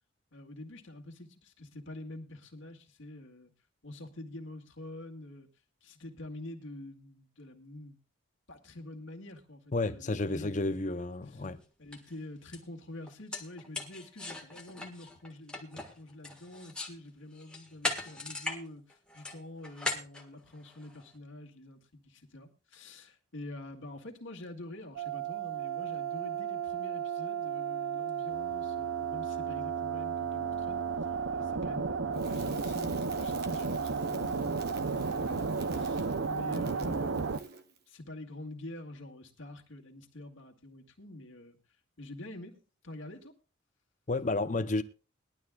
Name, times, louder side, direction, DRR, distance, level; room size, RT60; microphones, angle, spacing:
voice 1, 0.3-3.5 3.8-5.5 5.8-8.0 8.5-10.9 11.3-11.4 11.8-37.6 37.9-41.6 42.0-42.6 42.8-43.3, left 1 dB, 65° left, 2.1 m, -47 dB
voice 2, 9.7-11.6 44.1-44.8, left 2 dB, 35° left, 0.7 m, -31 dB
sound 1, 11.4-11.5 11.9-12.1 12.5-12.6 13.1-17.0 17.3-18.6 18.9-21.0, left 2 dB, 5° left, 1.6 m, -38 dB
sound 2, 25.0-37.4, right 5 dB, 70° right, 0.6 m, -33 dB
Crackle, 32.1-37.8, right 5 dB, 50° right, 1.3 m, -50 dB
21.0 x 12.0 x 2.4 m
head